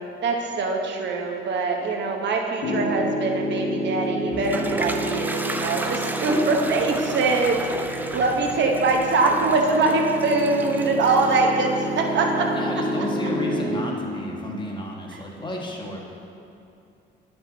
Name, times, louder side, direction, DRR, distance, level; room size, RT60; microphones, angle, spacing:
voice 1, 0.2-7.6 8.1-12.5, right 3 dB, 65° right, 1 dB, 1.0 m, -23 dB
Piano, 2.6-13.6, equal, 65° left, 1.8 m, -30 dB
Toilet flush, 4.1-12.9, right 1 dB, 10° right, 0.4 m, -33 dB
voice 2, 12.5-16.0, left 1 dB, 25° left, -1 dB, 1.4 m, -32 dB
9.6 x 5.9 x 3.9 m, 2.7 s
cardioid pair, 90°, 20 cm